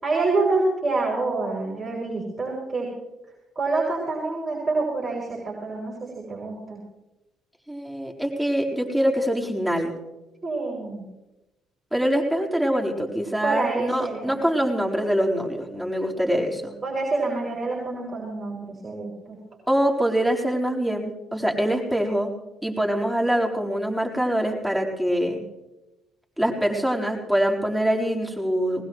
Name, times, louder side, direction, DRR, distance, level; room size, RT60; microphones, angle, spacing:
voice 1, 0.0-2.9 3.6-6.8 10.4-11.0 13.4-14.4 16.8-19.4, right 3 dB, 20° right, -4 dB, 6.0 m, -27 dB
voice 2, 7.7-9.9 11.9-16.7 19.7-22.3 22.6-25.4 26.4-28.8, equal, 5° right, -1 dB, 4.4 m, -24 dB
20.0 x 20.0 x 3.2 m, 0.99 s
hypercardioid pair, 55°, 0 cm